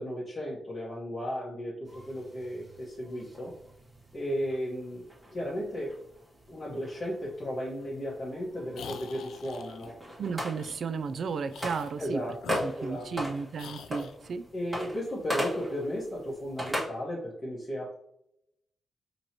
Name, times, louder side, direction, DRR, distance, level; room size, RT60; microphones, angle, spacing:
voice 1, 0.0-3.5 4.1-5.0 5.3-5.9 6.5-9.9 12.0-13.1 14.5-17.9, equal, 30° left, -7 dB, 1.3 m, -35 dB
sound 1, 1.8-16.8, equal, 10° right, 1.6 m, -40 dB
sound 2, 8.7-9.9 10.5-10.8 11.5-12.0 12.4-13.2 13.6-14.2, left 7 dB, 90° left, 0.3 m, -44 dB
voice 2, 10.2-12.2 12.6-14.4, right 5 dB, 60° right, 11 dB, 0.3 m, -34 dB
5.1 x 3.0 x 2.9 m, 0.75 s
cardioid pair, 110°, 0 cm